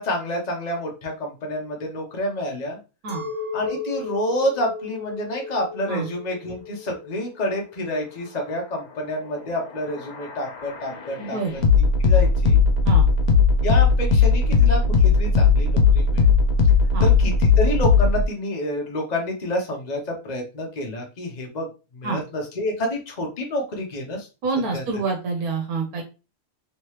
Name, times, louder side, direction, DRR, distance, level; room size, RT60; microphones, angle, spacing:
voice 1, 0.0-2.8 3.5-11.6 12.0-12.6 13.6-16.3 17.0-21.7 21.9-24.3 24.7-24.8, left 1 dB, 35° left, 1 dB, 0.9 m, -28 dB
Chink clink, 3.1-8.5, left 3 dB, 25° right, 1.1 m, -35 dB
sound 1, 9.6-18.2, left 5 dB, 85° left, 1.2 m, -18 dB
voice 2, 11.2-11.5 12.8-13.1 16.9-17.1 22.0-22.2 24.4-26.0, right 4 dB, 85° right, 1 dB, 1.3 m, -26 dB
3.2 x 3.0 x 3.2 m, 0.30 s
omnidirectional pair, 1.5 m